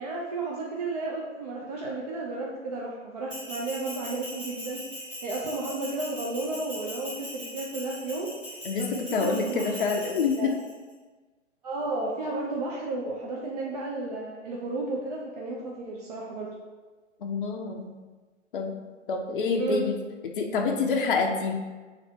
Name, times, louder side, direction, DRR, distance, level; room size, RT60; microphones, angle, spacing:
voice 1, 0.0-4.8 5.2-8.3 8.8-9.8 10.0-10.5 11.6-16.5 19.6-19.9, right 2 dB, 35° right, -3 dB, 0.4 m, -33 dB
Bell, 3.3-10.7, equal, 5° right, 0.8 m, -40 dB
voice 2, 8.6-10.6 17.2-17.9 18.5-18.8 19.1-20.0 20.4-21.5, left 4 dB, 45° left, 2 dB, 0.5 m, -27 dB
3.1 x 2.6 x 4.3 m, 1.3 s
figure-of-eight pair, 120°, 37 cm